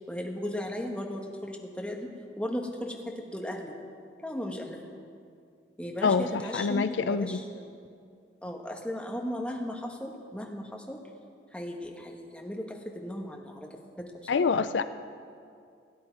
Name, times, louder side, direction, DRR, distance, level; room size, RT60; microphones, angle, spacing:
voice 1, 0.1-2.1 2.4-3.7 4.2-4.8 5.8-7.8 8.4-11.0 11.5-13.7 14.0-14.4, left 1 dB, 5° left, 1 dB, 1.1 m, -36 dB
voice 2, 6.0-7.4 14.3-14.8, left 5 dB, 75° left, 12 dB, 0.4 m, -26 dB
16.5 x 9.7 x 4.6 m, 2.3 s
head